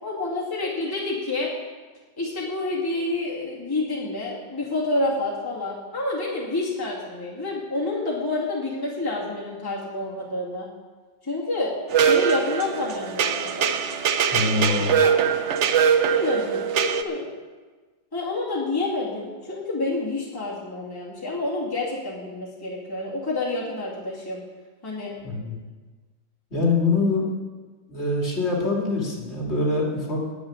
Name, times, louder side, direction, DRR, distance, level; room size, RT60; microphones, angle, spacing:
voice 1, 0.0-1.5 2.2-10.7 11.2-11.7 12.1-13.9 14.6-15.2 15.4-15.6 16.1-17.3 18.1-24.4 24.8-25.1, left 2 dB, 10° left, -5 dB, 2.2 m, -28 dB
sound 1, 11.9-17.0, right 7 dB, 85° right, 0.6 m, -22 dB
voice 2, 14.3-15.0 25.2-25.6 26.5-27.2 27.9-30.2, left 3 dB, 35° left, -3 dB, 2.8 m, -24 dB
10.5 x 8.1 x 9.6 m, 1.3 s
omnidirectional pair, 2.1 m